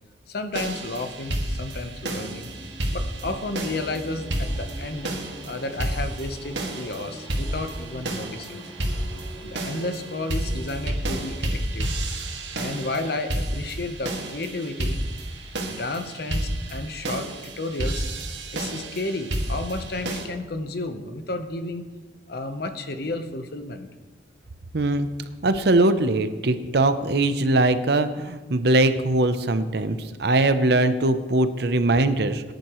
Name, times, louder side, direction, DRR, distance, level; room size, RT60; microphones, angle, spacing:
voice 1, 0.3-2.5 2.9-5.1 5.5-8.6 9.4-11.9 12.5-15.0 15.6-18.0 18.5-21.9 22.3-23.9, left 2 dB, 60° left, 7 dB, 1.0 m, -32 dB
sound 1, 0.5-20.2, right 1 dB, 80° right, 2.0 m, -31 dB
sound 2, 1.2-12.7, equal, 15° left, 2.9 m, -44 dB
voice 2, 24.7-25.1 25.4-32.4, right 2 dB, 60° right, 11 dB, 0.7 m, -21 dB
19.5 x 10.5 x 3.1 m, 1.3 s
head